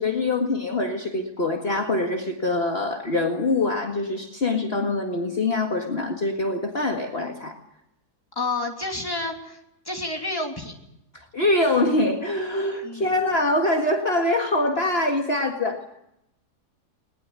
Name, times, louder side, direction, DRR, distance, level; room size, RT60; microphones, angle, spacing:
voice 1, 0.0-7.6 11.1-15.8, left 2 dB, 40° left, 3 dB, 2.1 m, -24 dB
voice 2, 8.3-9.6 9.8-10.7 12.8-13.1, left 2 dB, 15° left, 2 dB, 3.2 m, -29 dB
20.5 x 20.0 x 9.6 m, 0.82 s
omnidirectional pair, 1.7 m